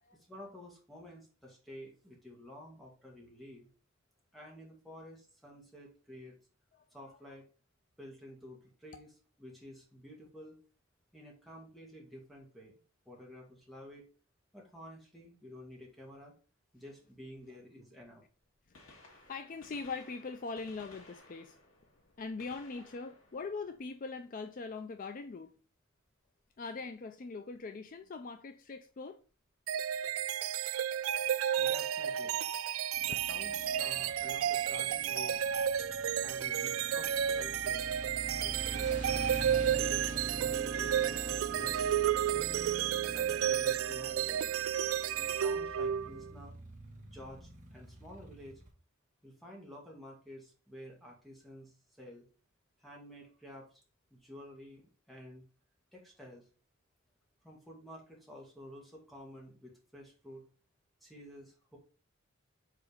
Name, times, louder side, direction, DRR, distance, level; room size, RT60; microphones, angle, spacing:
voice 1, 0.1-3.7 4.3-6.4 6.9-7.4 8.0-9.1 9.4-10.6 11.1-12.8 13.1-14.0 14.5-16.3 16.7-18.2 31.6-32.4 33.0-35.5 36.2-37.1 37.4-37.9 38.4-39.3 39.6-41.0 41.5-42.0 42.2-44.5 45.2-46.6 47.0-48.6 49.2-52.2 52.8-53.8 54.1-55.4 55.9-56.5 57.4-60.5 61.0-61.8, equal, ahead, 1.8 m, -51 dB
Gunshot gunfire, 18.6-24.5 26.4-26.5 27.6-27.7 29.2-29.3 30.7-30.8 31.0-31.1, left 2 dB, 80° left, 1.9 m, -59 dB
voice 2, 18.7-21.6 22.2-25.6 26.6-29.2, left 4 dB, 40° left, 0.4 m, -42 dB
sound 1, 29.7-46.3, right 9 dB, 80° right, 0.3 m, -32 dB
Motorcycle, 32.9-48.7, right 2 dB, 40° right, 1.7 m, -45 dB
5.0 x 4.1 x 5.0 m
head